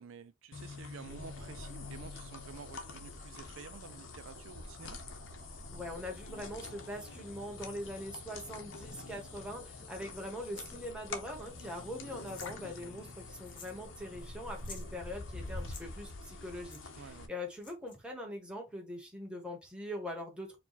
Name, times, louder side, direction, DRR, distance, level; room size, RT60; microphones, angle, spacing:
voice 1, 0.0-5.0 17.0-17.3, right 6 dB, 70° right, 0.4 m, -50 dB
sound 1, 0.5-17.3, left 3 dB, 70° left, 0.8 m, -46 dB
sound 2, 1.1-18.3, equal, 45° right, 1.2 m, -57 dB
voice 2, 5.7-20.6, left 1 dB, 5° right, 1.2 m, -42 dB
sound 3, 12.3-12.5 13.4-13.8 14.1-14.2 14.5-14.9 15.6-15.8 16.7-16.8 17.6-18.0, left 4 dB, 25° left, 1.0 m, -50 dB
4.6 x 2.3 x 3.9 m
head